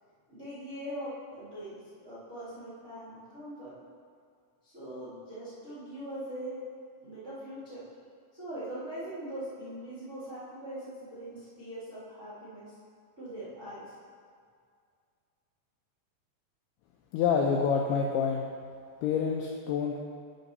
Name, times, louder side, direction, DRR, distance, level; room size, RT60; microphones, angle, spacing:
voice 1, 0.3-3.7 4.6-6.6 7.0-7.8 8.3-12.8 13.2-13.9, right 1 dB, 75° right, -12 dB, 0.6 m, -41 dB
voice 2, 17.1-18.4 19.0-20.0, left 6 dB, 90° left, 1 dB, 2.3 m, -27 dB
10.5 x 4.0 x 5.4 m, 2.1 s
omnidirectional pair, 5.1 m